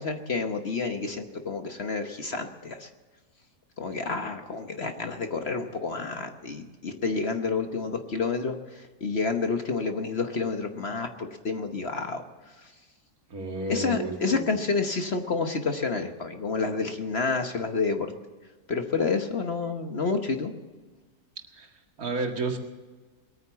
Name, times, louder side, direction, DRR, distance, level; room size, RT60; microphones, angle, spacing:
voice 1, 0.0-2.9 3.8-12.2 12.6-12.7 13.7-18.1 18.7-20.5, left 4 dB, 45° left, 6 dB, 1.2 m, -29 dB
voice 2, 13.3-14.6 21.5-21.7 22.0-22.6, right 3 dB, 60° right, 3 dB, 2.3 m, -31 dB
21.5 x 9.4 x 7.1 m, 1.3 s
omnidirectional pair, 1.7 m